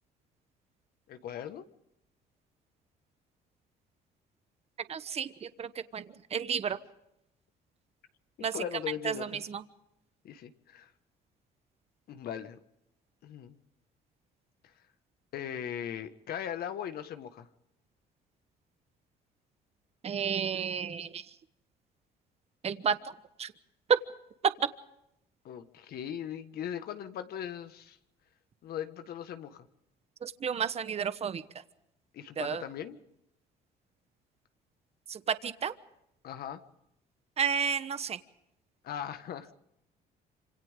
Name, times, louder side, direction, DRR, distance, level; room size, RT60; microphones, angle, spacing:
voice 1, 1.1-1.7 8.4-9.5 10.2-10.9 12.1-12.6 13.2-13.6 15.3-17.5 25.4-28.0 28.6-29.7 32.1-33.0 36.2-36.6 38.8-39.5, left 9 dB, 65° left, 9 dB, 1.7 m, -39 dB
voice 2, 4.9-6.8 8.4-8.5 9.0-9.6 20.0-21.2 22.6-23.0 23.4-23.5 23.9-24.0 24.6-24.7 30.2-31.4 32.4-32.6 35.1-35.7 37.4-38.2, right 7 dB, 40° right, 12 dB, 1.1 m, -31 dB
27.0 x 26.5 x 3.7 m, 0.81 s
cardioid pair, 110°, 17 cm